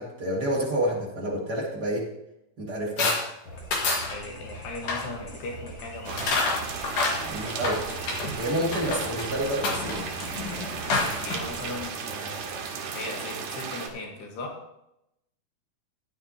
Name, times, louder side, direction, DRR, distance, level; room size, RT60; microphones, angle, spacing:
voice 1, 0.0-2.1 2.6-3.2 7.2-7.8 8.4-10.1, right 1 dB, 35° right, -4 dB, 1.8 m, -29 dB
sound 1, 3.0-3.2 3.7-4.1 4.7-5.1 6.2-8.4 8.7-9.3 9.6-11.4, left 3 dB, 60° left, 3.2 m, -28 dB
sound 2, 3.4-11.8, equal, 45° left, 1.8 m, -43 dB
voice 2, 4.1-6.4 11.0-12.5 12.9-14.6, left 3 dB, 80° left, 1 dB, 3.5 m, -38 dB
sound 3, 6.0-13.9, right 6 dB, 80° right, 3.3 m, -35 dB
15.0 x 10.5 x 2.8 m, 0.84 s
omnidirectional pair, 4.6 m